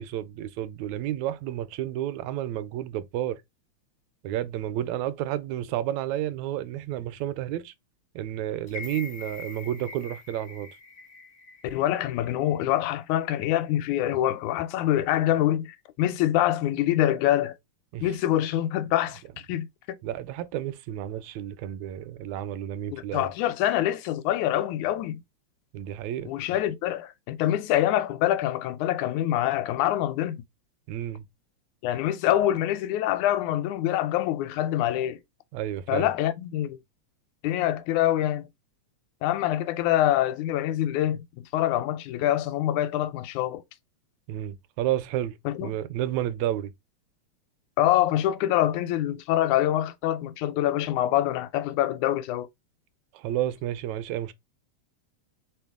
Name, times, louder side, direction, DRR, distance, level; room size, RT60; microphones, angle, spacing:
voice 1, 0.0-3.4 4.2-7.7 8.2-10.7 17.9-18.1 20.0-23.3 25.7-26.3 30.9-31.2 35.5-36.1 44.3-46.7 53.1-54.3, right 12 dB, 80° right, 1.8 m, -31 dB
sound 1, 8.7-12.8 13.2-13.3, left 5 dB, 55° left, 0.7 m, -44 dB
voice 2, 11.6-17.6 18.0-20.0 22.9-25.2 26.3-30.4 31.8-35.2 35.9-36.8 37.4-38.5 39.2-43.6 45.5-45.7 47.8-52.5, left 13 dB, 85° left, 1.9 m, -25 dB
4.4 x 3.4 x 3.5 m
omnidirectional pair, 3.3 m